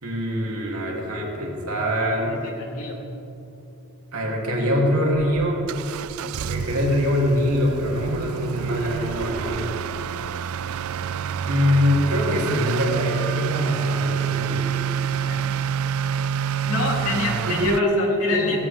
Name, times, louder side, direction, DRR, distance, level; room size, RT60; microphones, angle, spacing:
voice 1, 0.0-2.4 4.1-5.6 6.3-9.6 11.4-14.8 17.4-18.6, left 1 dB, 90° right, -2 dB, 3.0 m, -23 dB
voice 2, 2.3-3.1 15.1-15.5 16.7-18.6, left 2 dB, 80° left, -3 dB, 3.3 m, -28 dB
Motor vehicle (road) / Accelerating revving vroom, 5.1-17.8, right 7 dB, 70° right, 0.4 m, -27 dB
17.0 x 16.5 x 3.6 m, 2.9 s
head